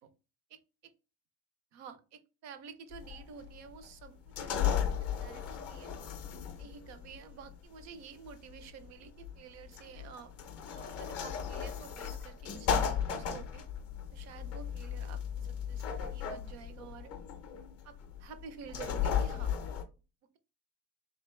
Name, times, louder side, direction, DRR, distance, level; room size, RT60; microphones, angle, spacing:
voice 1, 1.7-4.5 5.2-5.9 6.6-10.3 10.7-13.7 14.1-15.8 16.1-17.1 17.8-19.5, right 7 dB, 40° right, 10 dB, 0.4 m, -50 dB
sound 1, 2.9-19.8, left 8 dB, 30° left, 0.5 m, -36 dB
3.9 x 3.2 x 3.0 m, 0.32 s
cardioid pair, 170°, 48 cm